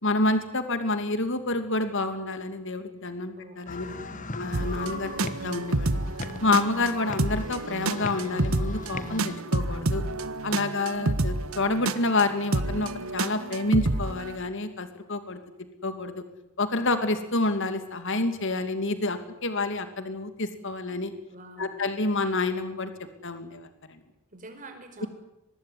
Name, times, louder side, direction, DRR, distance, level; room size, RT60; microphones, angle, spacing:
voice 1, 0.0-3.8 4.3-6.0 6.4-10.0 10.4-15.4 15.8-16.2 16.6-21.1 21.6-22.9 23.2-24.0 25.0-25.1, left 2 dB, 55° left, 9 dB, 2.7 m, -28 dB
voice 2, 3.3-4.3 21.3-21.8 24.3-25.1, right 2 dB, 35° right, 5 dB, 5.5 m, -46 dB
sound 1, 3.7-9.4, left 3 dB, 35° left, 1.5 m, -39 dB
sound 2, 4.5-14.4, right 2 dB, 70° right, 1.5 m, -29 dB
24.0 x 20.0 x 9.8 m, 0.83 s
head